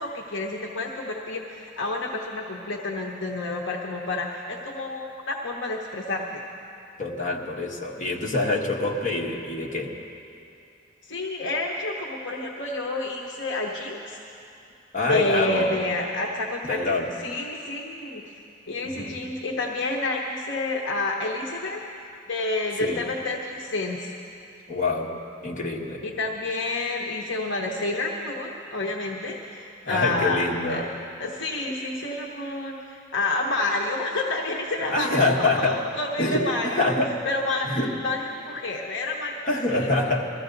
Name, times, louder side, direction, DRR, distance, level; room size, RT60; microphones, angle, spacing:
voice 1, 0.0-6.4 11.0-14.2 15.1-18.4 18.7-21.8 22.3-24.1 26.0-30.9 31.2-35.1 35.4-36.9 37.2-37.7 38.0-39.3 39.7-40.0, left 2 dB, 65° left, 0 dB, 1.0 m, -29 dB
voice 2, 7.0-9.9 14.9-15.8 16.6-17.1 18.8-19.1 22.8-23.0 24.7-25.2 25.4-26.0 29.9-30.9 34.9-35.8 36.2-37.2 37.6-37.9 39.4-40.3, left 2 dB, 40° left, -1 dB, 1.5 m, -25 dB
20.5 x 14.0 x 3.9 m, 2.6 s
head